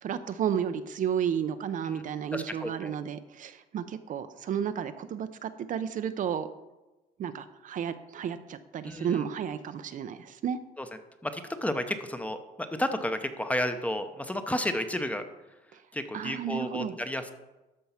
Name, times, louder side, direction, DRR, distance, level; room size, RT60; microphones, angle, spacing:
voice 1, 0.0-6.5 7.2-10.6 16.1-17.0, right 8 dB, 50° right, 11 dB, 0.6 m, -32 dB
voice 2, 2.3-3.0 8.8-9.3 10.8-10.9 11.2-15.2 15.9-17.3, left 1 dB, 10° left, 8 dB, 0.8 m, -32 dB
13.0 x 4.6 x 5.8 m, 1.1 s
cardioid pair, 110°, 17 cm